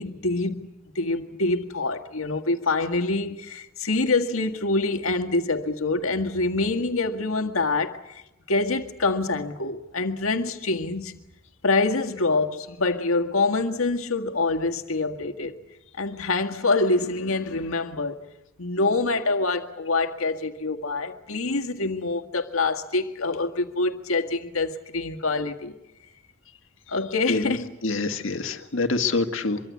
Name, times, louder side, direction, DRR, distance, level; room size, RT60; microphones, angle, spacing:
voice 1, 0.0-8.2 8.5-11.2 11.6-15.6 16.0-18.2 18.6-25.8 26.9-27.8, left 3 dB, 90° left, 1.8 m, -25 dB
voice 2, 27.8-29.6, left 3 dB, 70° left, 1.9 m, -25 dB
25.0 x 23.5 x 8.4 m
head